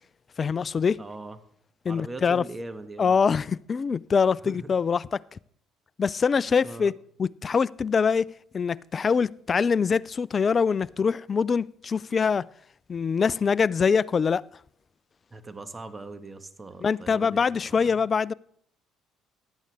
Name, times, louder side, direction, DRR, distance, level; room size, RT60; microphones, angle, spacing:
voice 1, 0.4-1.0 1.9-2.4 3.0-5.4 6.0-6.9 7.2-12.5 12.9-14.4 16.8-18.3, left 6 dB, 35° left, 0.4 m, -24 dB
voice 2, 1.0-1.4 1.9-3.1 4.4-4.7 6.6-6.9 15.3-17.9, right 2 dB, 20° right, 1.6 m, -40 dB
15.5 x 11.5 x 3.6 m
hypercardioid pair, 55°, 0 cm